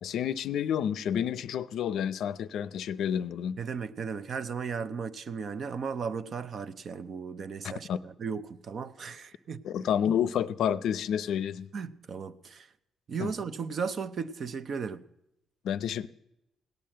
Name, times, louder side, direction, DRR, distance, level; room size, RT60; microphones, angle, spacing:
voice 1, 0.0-3.6 7.6-8.0 9.6-11.7 13.2-13.3 15.6-16.1, left 9 dB, 70° left, 0.5 m, -29 dB
voice 2, 3.6-9.6 11.7-12.7 13.1-15.1, right 5 dB, 45° right, 0.6 m, -36 dB
17.5 x 10.5 x 7.6 m
cardioid pair, 150°, 0 cm